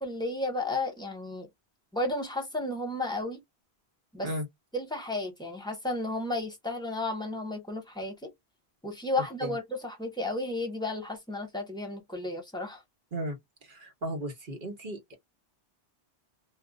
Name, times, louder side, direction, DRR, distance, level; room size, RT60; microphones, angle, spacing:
voice 1, 0.0-1.5 1.9-3.4 4.1-4.3 4.7-8.3 8.8-12.8, left 2 dB, 5° left, 1.1 m, -33 dB
voice 2, 13.6-15.1, right 1 dB, 55° right, 1.1 m, -35 dB
2.6 x 2.5 x 3.6 m
omnidirectional pair, 1.1 m